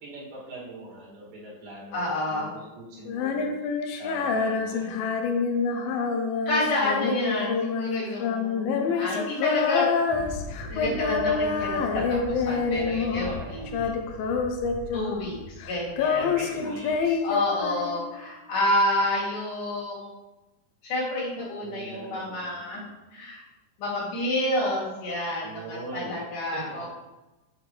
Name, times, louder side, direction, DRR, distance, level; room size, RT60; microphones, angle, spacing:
voice 1, 0.0-3.6 4.0-5.0 10.8-11.3 13.2-13.8 16.1-17.2 21.6-22.9 25.4-26.9, right 2 dB, 75° right, -5 dB, 3.9 m, -41 dB
voice 2, 1.9-2.5 6.5-9.9 10.7-13.9 14.9-16.4 17.2-20.1 20.8-22.8 23.1-23.4 23.8-26.9, left 1 dB, 65° left, -7 dB, 3.8 m, -29 dB
Female singing, 3.1-13.4 13.7-15.3 15.6-18.3, left 5 dB, 85° left, 2.4 m, -27 dB
Thunder, 9.7-17.2 17.7-17.8, left 1 dB, 35° right, 1.4 m, -41 dB
8.4 x 5.1 x 3.2 m, 1.0 s
omnidirectional pair, 4.1 m